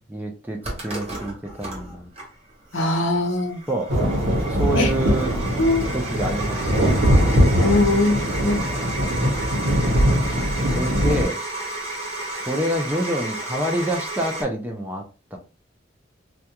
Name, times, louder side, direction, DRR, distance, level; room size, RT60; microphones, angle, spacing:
voice 1, 0.1-2.1 3.7-3.9 4.5-5.3 5.9-7.4 8.4-8.9 10.0-10.4 10.7-11.4 12.3-15.0 15.3-15.4, right 1 dB, 10° right, 0.4 m, -28 dB
sound 1, 0.6-14.4, right 2 dB, 30° right, 0.8 m, -32 dB
voice 2, 2.7-3.6 4.7-4.9 5.6-5.8 7.5-8.6, left 2 dB, 75° left, 0.7 m, -21 dB
sound 2, 3.9-11.2, equal, 70° right, 1.0 m, -21 dB
2.3 x 2.3 x 2.8 m
head